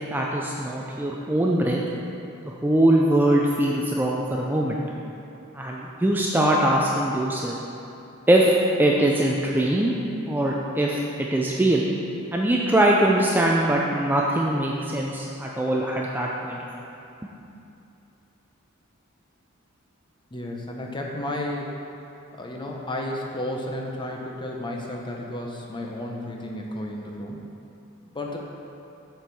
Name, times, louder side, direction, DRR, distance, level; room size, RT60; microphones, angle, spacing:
voice 1, 0.1-1.8 2.6-4.8 5.5-7.6 8.3-9.9 10.3-11.9 12.3-16.6, right 1 dB, 10° right, -2 dB, 0.4 m, -22 dB
voice 2, 20.3-21.7 22.3-27.4 28.1-28.4, left 1 dB, 20° left, 0 dB, 0.8 m, -32 dB
7.5 x 4.6 x 5.3 m, 2.7 s
head